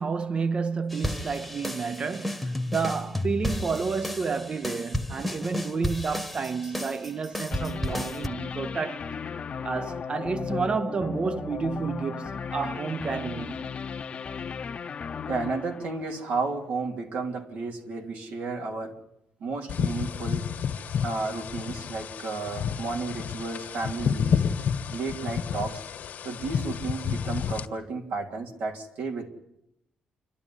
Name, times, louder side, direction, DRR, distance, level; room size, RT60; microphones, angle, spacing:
voice 1, 0.0-9.1 9.6-13.7, right 5 dB, 35° right, 0.7 m, -30 dB
sound 1, 0.9-8.3, left 1 dB, ahead, 1.3 m, -32 dB
sound 2, 7.5-16.6, left 6 dB, 45° left, 0.9 m, -36 dB
voice 2, 15.3-18.9 19.4-20.4 21.0-24.4 24.9-25.8 26.2-29.3, right 3 dB, 85° right, 3.2 m, -32 dB
sound 3, 19.7-27.6, left 7 dB, 70° left, 1.6 m, -30 dB
28.0 x 12.5 x 10.0 m
cardioid pair, 115°, 3 cm